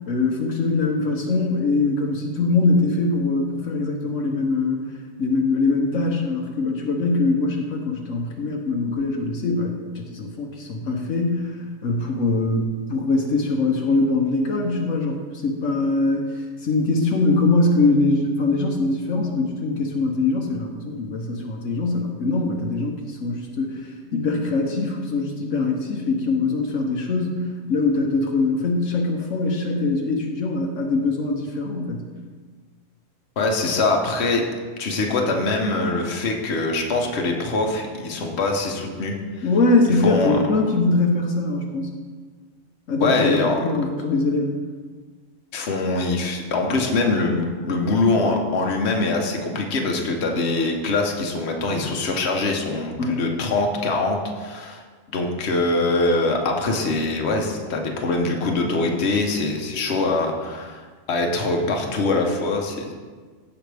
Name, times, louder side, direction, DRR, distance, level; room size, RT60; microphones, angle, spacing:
voice 1, 0.1-32.0 39.4-41.9 42.9-44.5 53.0-53.2, left 3 dB, 75° left, 1 dB, 1.3 m, -22 dB
voice 2, 33.4-34.4 34.8-39.5 40.0-40.4 43.0-43.6 45.5-54.8 55.1-60.8 61.1-62.9, left 3 dB, 55° left, 2 dB, 1.3 m, -23 dB
15.5 x 5.7 x 3.4 m, 1.5 s
omnidirectional pair, 1.3 m